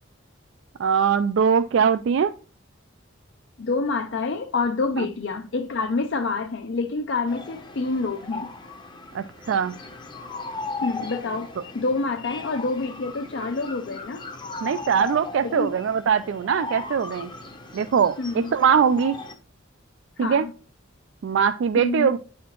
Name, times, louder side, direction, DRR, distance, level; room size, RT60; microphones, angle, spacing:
voice 1, 0.8-2.3 5.0-5.1 9.1-9.8 14.6-17.3 17.7-19.2 20.2-20.5 21.2-22.2, right 7 dB, 65° right, 0.3 m, -21 dB
voice 2, 3.6-8.5 10.8-14.3 15.4-15.8 18.2-18.5 20.2-20.5 21.8-22.1, left 3 dB, 60° left, 0.5 m, -27 dB
sound 1, 7.3-19.3, left 3 dB, 20° left, 0.7 m, -37 dB
9.2 x 4.3 x 2.9 m
head